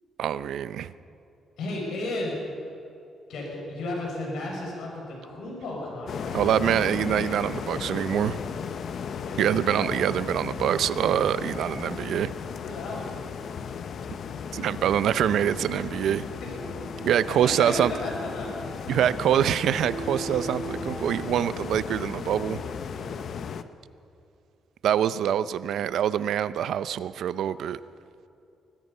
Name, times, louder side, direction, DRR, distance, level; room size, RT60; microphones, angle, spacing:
voice 1, 0.2-0.9 6.3-8.4 9.4-12.3 14.1-14.2 14.5-16.2 17.0-17.9 18.9-22.6 24.8-27.8, right 10 dB, 75° right, 15 dB, 0.7 m, -25 dB
voice 2, 1.6-2.3 3.3-7.3 9.2-9.9 11.3-11.7 12.6-13.2 16.4-16.5 17.4-18.9 22.9-23.2, left 2 dB, 75° left, -2 dB, 6.3 m, -35 dB
sound 1, 6.1-23.6, left 6 dB, 60° left, 0.9 m, -35 dB
sound 2, 16.1-21.3, right 4 dB, 25° right, 1.2 m, -41 dB
24.5 x 19.0 x 5.6 m, 2.7 s
cardioid pair, 115°, 0 cm